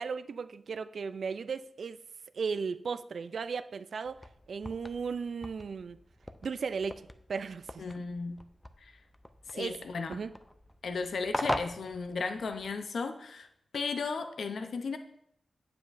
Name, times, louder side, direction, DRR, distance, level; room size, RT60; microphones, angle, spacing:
voice 1, 0.0-2.0 2.3-4.2 4.5-6.0 6.4-7.8 9.5-9.8 10.1-10.3, right 5 dB, 70° right, 13 dB, 0.3 m, -36 dB
sound 1, 4.0-12.8, left 1 dB, 10° left, 0.4 m, -41 dB
voice 2, 7.8-8.4 8.8-8.9 9.5-10.2 10.8-13.5 13.7-15.0, left 4 dB, 80° left, 7 dB, 0.6 m, -35 dB
8.8 x 7.3 x 2.6 m, 0.71 s
wide cardioid pair, 100°, 0 cm